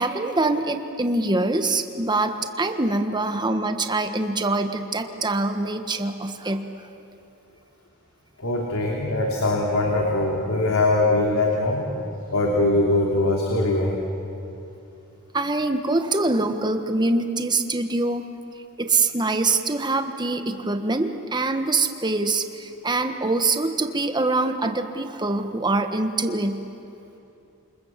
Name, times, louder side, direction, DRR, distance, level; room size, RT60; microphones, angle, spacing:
voice 1, 0.0-6.7 15.3-18.2 18.8-26.7, right 2 dB, 20° right, 7 dB, 1.5 m, -24 dB
voice 2, 8.4-11.8 12.3-14.0, left 2 dB, 70° left, -1 dB, 3.2 m, -22 dB
27.5 x 27.0 x 7.5 m, 2.7 s
head